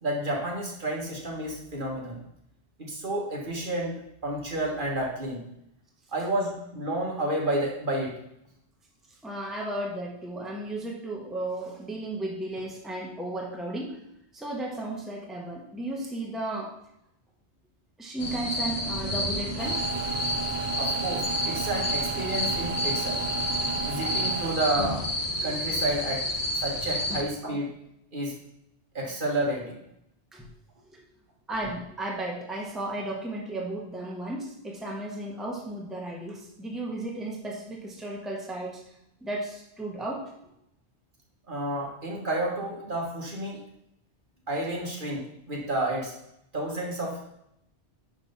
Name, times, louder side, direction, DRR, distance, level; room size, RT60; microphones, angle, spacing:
voice 1, 0.0-2.2 2.8-4.0 4.2-5.4 6.1-8.1 20.8-23.2 23.9-25.1 25.4-26.2 26.5-27.7 28.1-28.4 29.0-29.8 41.5-43.6 44.5-46.1 46.5-47.2, right 1 dB, 50° right, -2 dB, 1.7 m, -30 dB
voice 2, 9.2-14.0 14.3-16.7 18.0-19.8 27.1-27.2 30.3-30.5 30.9-31.0 31.5-38.8 39.2-40.3, right 1 dB, ahead, -2 dB, 1.2 m, -34 dB
sound 1, 18.2-27.2, left 1 dB, 45° left, 1.2 m, -30 dB
sound 2, 18.2-24.4, right 3 dB, 20° right, 1.3 m, -38 dB
sound 3, 19.6-24.6, right 6 dB, 70° right, 0.8 m, -34 dB
10.5 x 3.5 x 5.6 m, 0.79 s
omnidirectional pair, 1.1 m